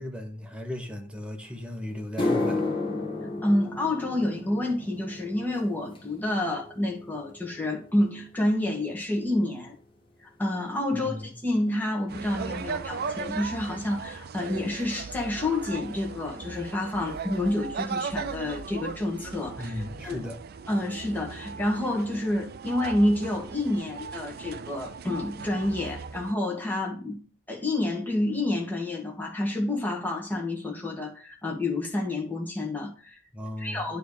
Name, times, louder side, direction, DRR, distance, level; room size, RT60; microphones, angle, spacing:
voice 1, 0.0-2.6 10.9-11.2 19.6-20.4 33.3-33.9, left 1 dB, 5° right, 1.1 m, -36 dB
sound 1, 1.4-1.5 2.0-10.5 10.8-11.2 12.0-12.1 14.8-14.9 16.5-16.6 16.8-17.1 17.3-17.9 18.3-18.4 18.9-19.0, left 2 dB, 25° left, 1.5 m, -34 dB
voice 2, 3.4-9.8 10.4-11.2 11.4-20.3 20.7-27.2 27.5-33.2 33.6-34.0, left 1 dB, 10° left, 1.8 m, -28 dB
sound 2, 12.1-26.3, right 5 dB, 50° right, 0.4 m, -38 dB
9.3 x 3.5 x 4.9 m
head